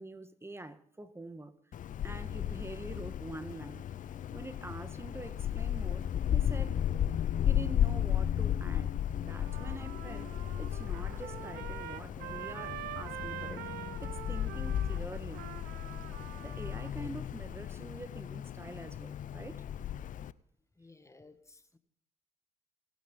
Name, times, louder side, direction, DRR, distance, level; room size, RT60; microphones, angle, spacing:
voice 1, 0.0-1.8 2.0-3.8 4.3-6.8 7.4-13.7 14.0-15.4 16.4-19.6, right 2 dB, 15° right, 1.6 m, -46 dB
Wind, 1.7-20.3, left 10 dB, 55° left, 0.8 m, -34 dB
Trumpet, 9.3-16.9, right 14 dB, 80° right, 0.8 m, -45 dB
voice 2, 20.8-21.8, left 3 dB, 20° left, 1.7 m, -57 dB
28.0 x 9.6 x 4.0 m
supercardioid pair, 65°, 16 cm